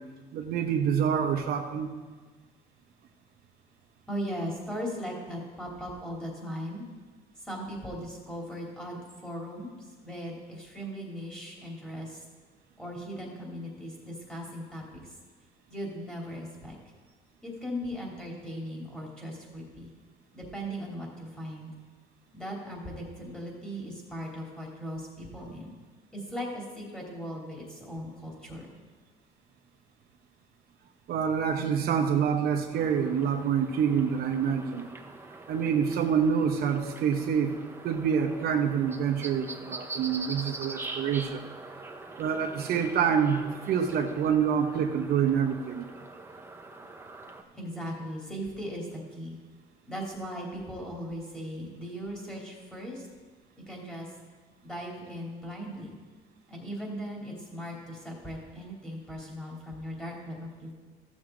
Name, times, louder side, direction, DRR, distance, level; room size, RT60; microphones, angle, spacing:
voice 1, 0.3-1.9 31.1-34.9 35.5-37.6 37.8-41.5 42.2-45.9, right 7 dB, 65° right, 4 dB, 0.9 m, -27 dB
voice 2, 4.1-6.8 7.4-12.2 12.8-15.1 15.7-16.8 17.4-19.9 20.3-21.7 22.3-25.8 26.1-28.7 47.5-49.4 49.9-53.1 53.7-54.1 54.6-55.9 56.5-60.7, equal, 5° left, -2 dB, 3.0 m, -38 dB
sound 1, 32.7-47.4, right 3 dB, 15° right, 0.9 m, -43 dB
14.5 x 7.2 x 3.8 m, 1.4 s
cardioid pair, 110°, 17 cm